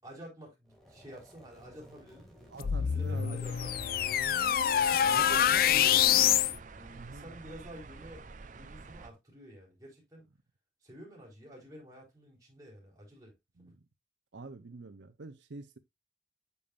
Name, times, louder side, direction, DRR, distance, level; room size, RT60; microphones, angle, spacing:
voice 1, 0.0-4.1 4.8-8.2 8.5-10.2 10.8-13.3, equal, 20° right, 4.1 m, -50 dB
sound 1, 0.6-6.6, equal, ahead, 2.6 m, -58 dB
voice 2, 2.5-3.4 5.0-5.5 6.9-7.3 13.6-13.8 14.3-15.8, right 3 dB, 85° right, 0.7 m, -45 dB
sound 2, 2.6-6.5, left 9 dB, 50° left, 0.3 m, -26 dB
sound 3, 3.4-9.1, right 3 dB, 45° right, 0.6 m, -48 dB
8.3 x 7.0 x 2.4 m
head